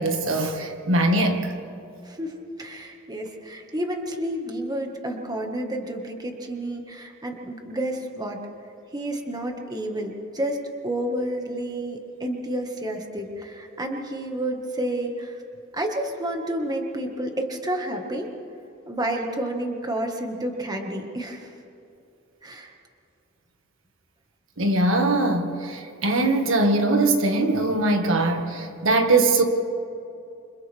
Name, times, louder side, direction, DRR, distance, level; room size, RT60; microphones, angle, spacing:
voice 1, 0.0-1.5 11.5-11.6 24.6-29.4, right 2 dB, 65° right, 4 dB, 1.9 m, -21 dB
voice 2, 2.0-8.4 8.9-15.4 15.7-18.3 18.9-21.5 22.4-22.7, right 1 dB, 20° right, 2 dB, 1.8 m, -30 dB
28.5 x 26.5 x 3.6 m, 2.7 s
head